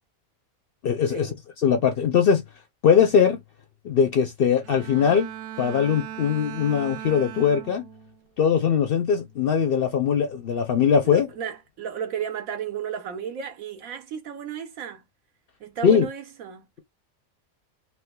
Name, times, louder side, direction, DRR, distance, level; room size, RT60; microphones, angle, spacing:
voice 1, 0.8-1.3 1.6-2.4 2.8-3.4 3.8-5.3 5.6-7.9 8.4-11.3 15.8-16.1, left 7 dB, 60° left, 0.6 m, -21 dB
Bowed string instrument, 4.6-8.2 8.7-9.0, right 11 dB, 75° right, 0.9 m, -39 dB
voice 2, 11.0-15.0 15.6-16.7, right 8 dB, 90° right, 1.3 m, -34 dB
3.3 x 3.1 x 2.2 m
omnidirectional pair, 1.4 m